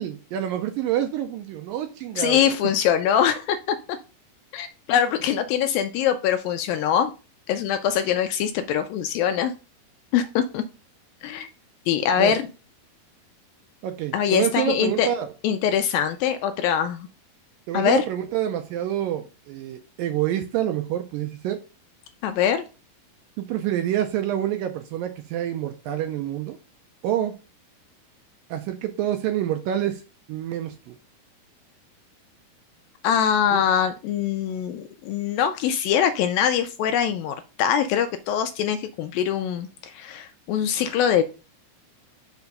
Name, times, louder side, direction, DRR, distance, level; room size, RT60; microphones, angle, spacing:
voice 1, 0.0-2.5 12.2-12.4 13.8-15.3 17.7-21.6 23.4-26.6 27.0-27.4 28.5-30.0 30.3-31.0 33.5-33.6, right 11 dB, 80° right, 7 dB, 2.1 m, -27 dB
voice 2, 2.2-4.0 4.5-7.1 7.5-9.5 10.1-10.6 11.2-11.5 11.9-12.4 14.1-15.1 15.4-17.1 17.7-18.0 22.2-22.6 33.0-41.2, left 9 dB, 80° left, 8 dB, 2.1 m, -23 dB
5.8 x 4.6 x 5.3 m, 0.32 s
omnidirectional pair, 4.5 m